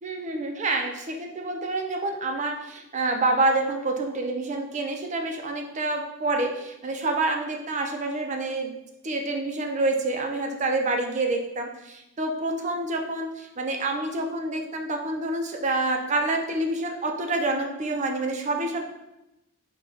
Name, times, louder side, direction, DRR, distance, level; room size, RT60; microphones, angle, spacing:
voice 1, 0.0-8.7 9.0-18.8, right 2 dB, 30° right, 3 dB, 0.4 m, -27 dB
4.9 x 2.2 x 3.8 m, 0.93 s
head